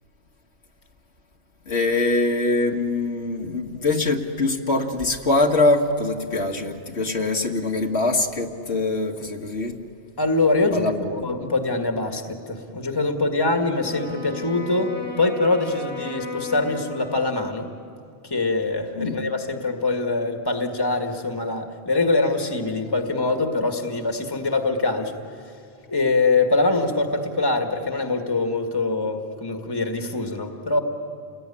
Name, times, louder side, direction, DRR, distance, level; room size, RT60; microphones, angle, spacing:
voice 1, 1.7-9.8 10.7-11.3 19.0-19.2, left 2 dB, 70° left, 2 dB, 1.9 m, -23 dB
voice 2, 10.2-10.9 11.2-17.7 18.2-25.2 25.9-30.8, left 3 dB, 20° left, 5 dB, 1.7 m, -23 dB
Wind instrument woodwind instrument, 13.7-17.9, left 3 dB, 60° right, 5.6 m, -35 dB
29.5 x 20.0 x 9.9 m, 2.4 s
omnidirectional pair, 1.2 m